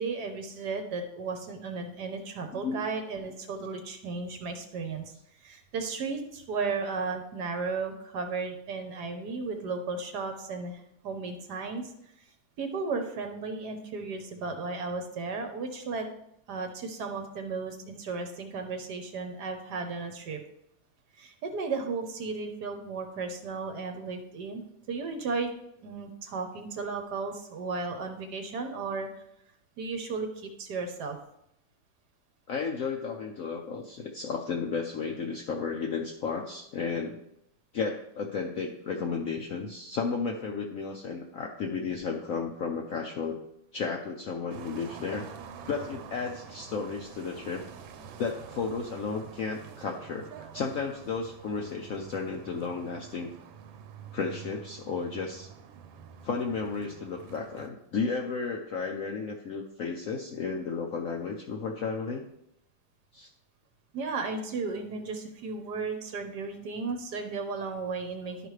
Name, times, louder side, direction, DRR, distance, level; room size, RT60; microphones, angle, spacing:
voice 1, 0.0-5.1 5.4-11.9 12.6-16.1 16.5-20.4 21.2-25.5 25.8-29.2 29.8-31.2 63.9-68.5, right 4 dB, 65° right, 5 dB, 1.3 m, -34 dB
voice 2, 32.5-37.2 37.7-43.4 43.7-45.3 45.7-47.6 48.2-53.3 54.1-55.5 56.2-62.3 63.1-63.3, left 5 dB, 70° left, 2 dB, 0.8 m, -33 dB
sound 1, 44.5-57.7, right 7 dB, 85° right, 1.5 m, -47 dB
11.5 x 5.0 x 3.2 m, 0.79 s
omnidirectional pair, 2.1 m